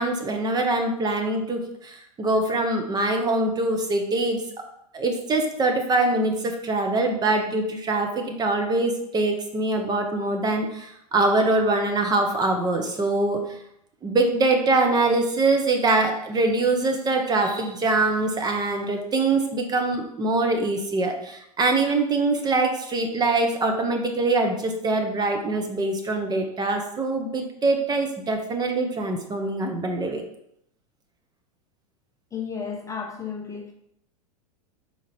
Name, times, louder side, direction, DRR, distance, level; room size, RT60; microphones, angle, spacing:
voice 1, 0.0-4.4 4.9-13.6 14.0-30.2, right 2 dB, 20° right, 4 dB, 0.7 m, -23 dB
voice 2, 32.3-33.7, left 6 dB, 15° left, 2 dB, 0.6 m, -33 dB
4.3 x 2.9 x 4.1 m, 0.75 s
hypercardioid pair, 100°, 20 cm